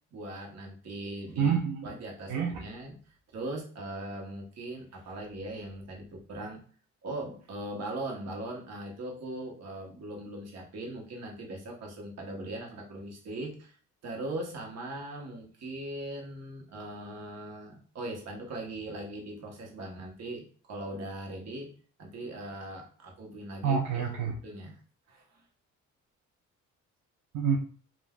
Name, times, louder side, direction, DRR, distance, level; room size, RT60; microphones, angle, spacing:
voice 1, 0.1-1.5 1.8-2.9 3.3-6.6 7.0-24.0 24.4-24.8 25.1-25.4, right 1 dB, 60° right, 0 dB, 1.1 m, -40 dB
voice 2, 1.4-1.9 2.3-2.6 23.6-24.4 27.3-27.6, right 6 dB, 80° right, 0 dB, 0.6 m, -27 dB
3.5 x 2.5 x 2.3 m, 0.43 s
cardioid pair, 90°, 30 cm